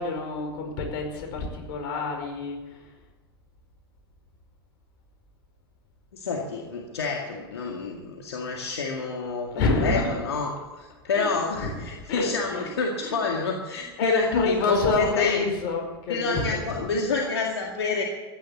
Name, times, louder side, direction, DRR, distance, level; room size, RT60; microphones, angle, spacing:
voice 1, 0.0-2.9 9.5-10.3 11.1-12.7 13.0-13.2 13.7-16.9, left 3 dB, 60° left, 2 dB, 5.2 m, -28 dB
voice 2, 6.1-10.5 10.8-15.4 16.1-18.0, left 4 dB, 85° left, 0 dB, 2.1 m, -28 dB
15.5 x 10.5 x 7.3 m, 1.2 s
hypercardioid pair, 95°, 13 cm